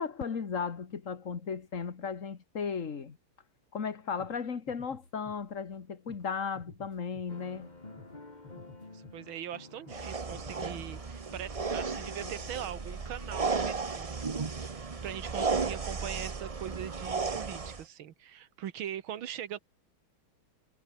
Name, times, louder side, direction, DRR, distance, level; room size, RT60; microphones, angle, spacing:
voice 1, 0.0-3.2 3.7-7.7, left 6 dB, 40° left, 1.9 m, -35 dB
sound 1, 3.8-3.9 4.2-4.4 4.7-5.8 6.1-6.3 6.5-7.7 8.0-8.2 8.4-9.6 9.9-10.1 10.3-10.9, left 3 dB, 85° left, 6.8 m, -53 dB
sound 2, 7.3-14.0, left 2 dB, 20° left, 2.6 m, -51 dB
voice 2, 8.9-19.6, right 10 dB, 75° right, 2.0 m, -41 dB
sound 3, 9.9-17.8, right 4 dB, 50° right, 0.4 m, -34 dB
omnidirectional pair, 2.3 m